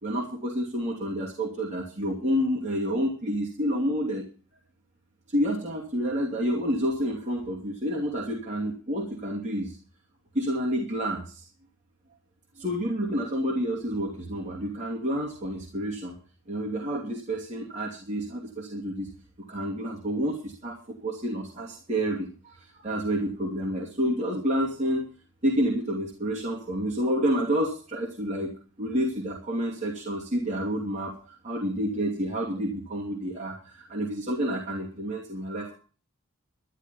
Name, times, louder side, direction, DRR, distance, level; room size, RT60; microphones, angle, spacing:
voice 1, 0.0-4.2 5.3-9.8 10.3-11.4 12.6-16.1 16.5-19.1 19.5-25.1 25.4-35.7, equal, 35° right, -3 dB, 2.7 m, -29 dB
12.0 x 11.0 x 5.6 m, 0.38 s
head